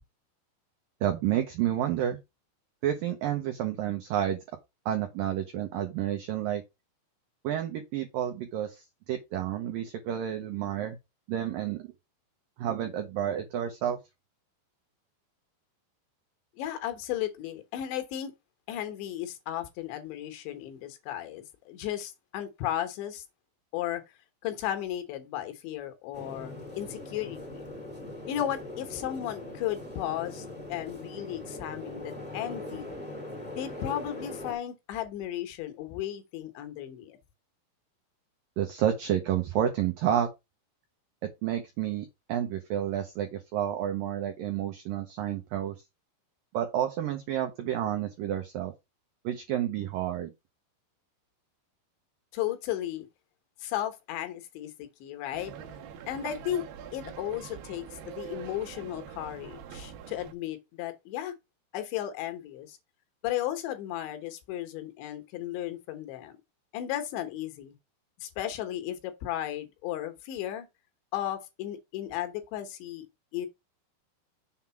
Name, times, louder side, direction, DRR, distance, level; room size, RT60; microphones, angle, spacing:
voice 1, 1.0-2.2 2.8-4.4 4.9-6.6 7.4-11.0 11.3-11.9 12.6-14.0 38.6-40.3 41.2-45.8 46.5-48.7 49.2-50.3, right 10 dB, 90° right, 2.0 m, -30 dB
voice 2, 16.6-18.3 18.7-23.2 23.7-24.0 24.4-27.4 28.3-33.0 33.5-37.2 52.3-53.1 53.6-55.5 56.1-56.7 56.9-61.3 61.7-62.8 63.2-66.3 66.7-67.7 68.2-70.7 71.1-73.1 73.3-73.5, left 12 dB, 75° left, 3.4 m, -35 dB
sound 1, 26.1-34.5, left 1 dB, 10° right, 0.6 m, -41 dB
sound 2, 55.3-60.3, right 8 dB, 70° right, 2.3 m, -44 dB
7.2 x 3.7 x 5.7 m
omnidirectional pair, 5.3 m